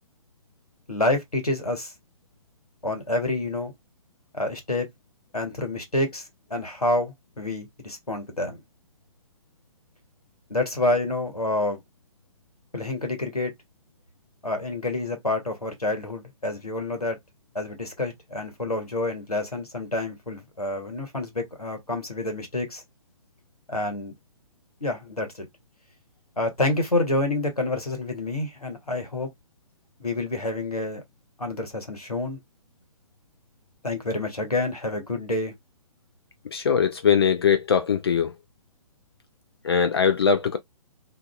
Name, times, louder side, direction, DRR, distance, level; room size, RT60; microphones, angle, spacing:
voice 1, 0.9-1.9 2.8-3.7 4.3-4.9 5.3-6.2 6.5-8.6 10.5-11.8 12.7-13.5 14.4-17.2 17.5-22.8 23.7-24.1 24.8-25.5 26.4-29.3 30.0-31.0 31.4-32.4 33.8-35.5, left 2 dB, 90° left, 1.0 m, -28 dB
voice 2, 36.5-38.3 39.6-40.6, left 7 dB, 45° left, 0.4 m, -21 dB
2.4 x 2.4 x 2.2 m
figure-of-eight pair, 130°, 19 cm